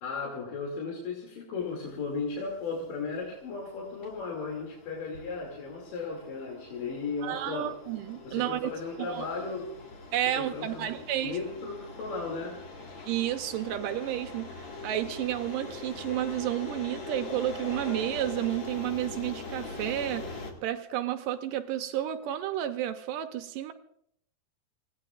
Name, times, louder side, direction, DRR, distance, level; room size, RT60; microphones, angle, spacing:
voice 1, 0.0-7.7 8.2-9.7 10.4-10.9 11.2-12.6, left 4 dB, 65° left, -2 dB, 4.1 m, -35 dB
sound 1, 1.6-20.5, left 3 dB, 40° left, 2.0 m, -43 dB
voice 2, 7.2-8.7 9.0-9.2 10.1-11.4 13.1-23.7, right 12 dB, 75° right, 8 dB, 2.1 m, -31 dB
28.5 x 17.0 x 2.4 m, 0.70 s
omnidirectional pair, 4.2 m